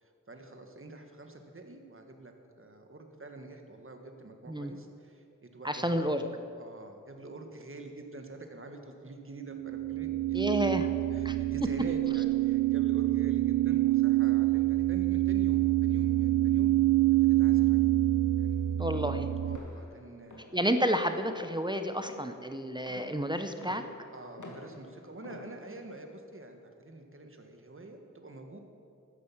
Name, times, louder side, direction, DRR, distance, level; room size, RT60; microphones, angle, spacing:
voice 1, 0.0-5.2 5.5-10.6 11.1-16.7 17.2-17.9 18.4-18.7 19.0-19.1 19.4-20.5 24.1-28.6, right 2 dB, 45° right, 4 dB, 1.6 m, -46 dB
voice 2, 5.6-6.2 10.3-10.9 11.2-11.4 18.8-19.3 20.5-23.8, equal, 15° right, 7 dB, 0.7 m, -30 dB
sound 1, 9.5-19.6, right 15 dB, 75° right, 0.6 m, -26 dB
sound 2, 19.5-26.0, left 2 dB, 75° left, 2.1 m, -50 dB
13.0 x 10.0 x 7.2 m, 2.5 s
wide cardioid pair, 80°, 31 cm